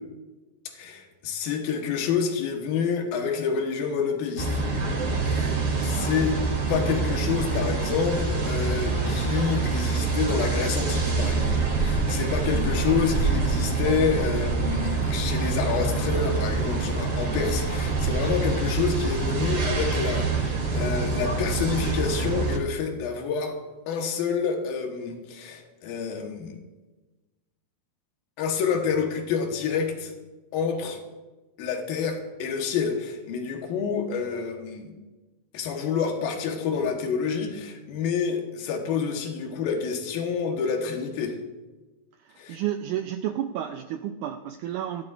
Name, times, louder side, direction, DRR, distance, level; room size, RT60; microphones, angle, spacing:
voice 1, 0.7-4.7 5.3-5.5 5.8-6.4 6.7-23.6 23.9-26.6 28.4-30.1 30.5-31.0 31.6-34.9 35.5-41.4 42.4-42.6, left 6 dB, 85° left, 3 dB, 3.0 m, -28 dB
sound 1, 4.4-22.6, right 3 dB, 35° right, 3.2 m, -26 dB
voice 2, 42.2-45.0, right 11 dB, 90° right, 6 dB, 1.7 m, -31 dB
18.5 x 11.0 x 2.5 m, 1.2 s
omnidirectional pair, 4.1 m